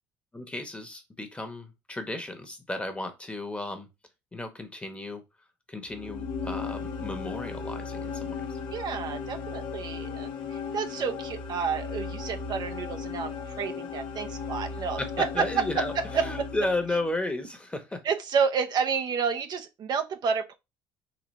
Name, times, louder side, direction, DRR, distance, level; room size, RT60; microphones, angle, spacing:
voice 1, 0.3-3.9 4.3-5.2 5.7-8.5 15.0-18.0, left 2 dB, 15° left, 1.1 m, -34 dB
sound 1, 5.9-17.2, left 5 dB, 70° left, 1.0 m, -36 dB
voice 2, 8.7-15.8 16.1-16.3 18.0-20.5, right 6 dB, 50° right, 0.6 m, -30 dB
4.0 x 2.7 x 3.1 m
supercardioid pair, 80°, 9 cm